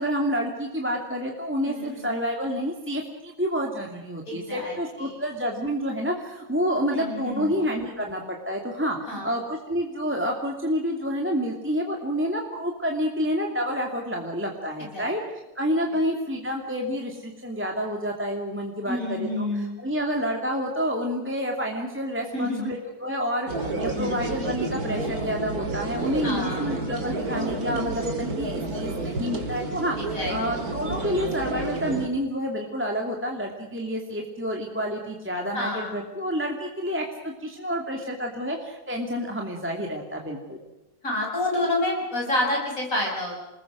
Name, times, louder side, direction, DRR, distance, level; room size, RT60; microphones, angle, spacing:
voice 1, 0.0-15.2 15.6-40.6, equal, 5° right, 0 dB, 2.4 m, -29 dB
voice 2, 1.6-2.1 4.3-5.1 6.9-7.6 9.1-9.3 14.9-15.1 15.9-16.0 18.9-19.7 22.3-22.7 23.9-24.1 26.2-26.7 30.1-30.3 35.5-36.0 41.0-43.4, left 1 dB, 40° left, -1 dB, 7.7 m, -29 dB
sound 1, 23.5-32.1, right 2 dB, 45° right, 3.0 m, -30 dB
28.5 x 20.0 x 6.3 m, 0.99 s
omnidirectional pair, 2.2 m